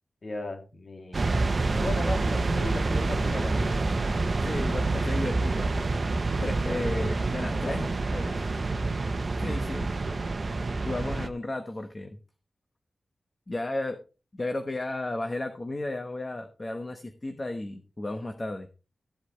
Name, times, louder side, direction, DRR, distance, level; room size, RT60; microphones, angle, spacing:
voice 1, 0.2-1.4 1.7-3.9 6.7-7.3 7.5-8.4, left 2 dB, 55° left, 2 dB, 3.2 m, -37 dB
sound 1, 1.1-11.3, right 3 dB, 45° right, 1.1 m, -27 dB
voice 2, 4.4-5.7 6.4-8.3 9.4-9.9 10.9-12.2 13.5-14.0 14.4-18.7, left 2 dB, 30° left, 6 dB, 1.2 m, -34 dB
14.0 x 8.2 x 3.3 m, 0.33 s
wide cardioid pair, 105°, 0 cm